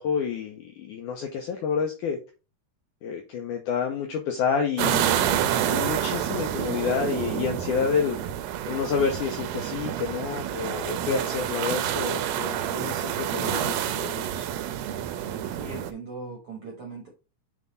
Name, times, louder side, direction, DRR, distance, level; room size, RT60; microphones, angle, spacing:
voice 1, 0.0-2.2 3.0-8.2 8.7-14.5, left 6 dB, 80° left, 1.8 m, -29 dB
sound 1, 4.8-15.9, right 11 dB, 80° right, 2.2 m, -28 dB
voice 2, 15.2-17.1, right 3 dB, 65° right, 1.4 m, -39 dB
7.4 x 3.5 x 3.9 m
omnidirectional pair, 4.5 m